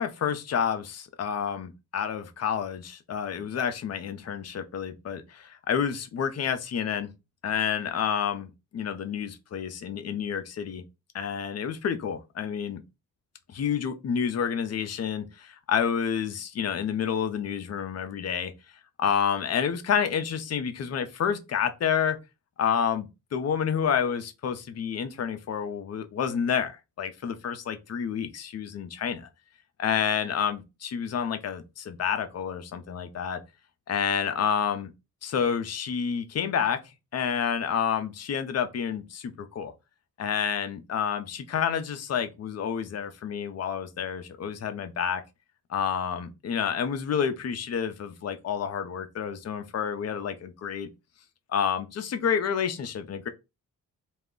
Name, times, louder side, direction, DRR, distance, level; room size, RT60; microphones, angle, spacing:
voice 1, 0.0-7.1 7.4-10.8 11.1-12.8 13.5-18.5 19.0-22.2 22.6-29.3 29.8-33.4 33.9-34.9 35.2-36.8 37.1-39.7 40.2-45.2 45.7-50.9 51.5-53.3, left 7 dB, 45° left, 0.5 m, -29 dB
2.4 x 2.0 x 3.6 m
wide cardioid pair, 115°, 36 cm